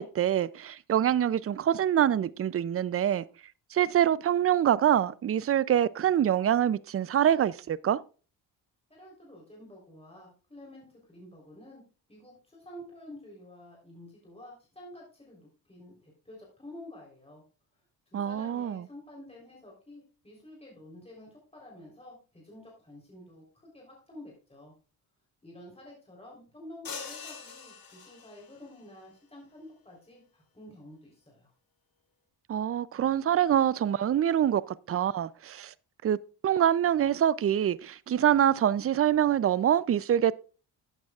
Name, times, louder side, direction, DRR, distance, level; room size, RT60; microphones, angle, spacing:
voice 1, 0.0-3.2 3.7-8.0 18.1-18.9 32.5-35.7 36.0-36.2 36.4-40.3, right 10 dB, 35° right, 0.4 m, -25 dB
voice 2, 8.9-11.8 12.1-17.4 18.1-24.7 25.4-31.5, left 1 dB, 15° left, 3.7 m, -50 dB
sound 1, 26.8-28.6, left 5 dB, 50° left, 2.4 m, -43 dB
13.0 x 8.9 x 2.4 m
cardioid pair, 80°, 44 cm